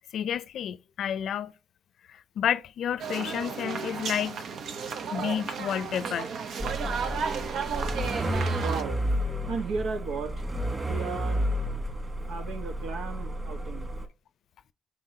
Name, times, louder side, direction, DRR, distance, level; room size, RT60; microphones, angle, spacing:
voice 1, 0.1-1.5 2.1-4.4 5.1-6.3, left 9 dB, 70° left, 0.6 m, -30 dB
sound 1, 3.0-8.8, right 6 dB, 70° right, 0.9 m, -33 dB
sound 2, 6.6-14.0, equal, 25° right, 2.4 m, -31 dB
voice 2, 8.5-9.0 9.5-10.3 10.9-11.4 12.3-13.9, right 4 dB, 85° right, 1.4 m, -34 dB
9.1 x 3.8 x 2.9 m
cardioid pair, 90°, 0 cm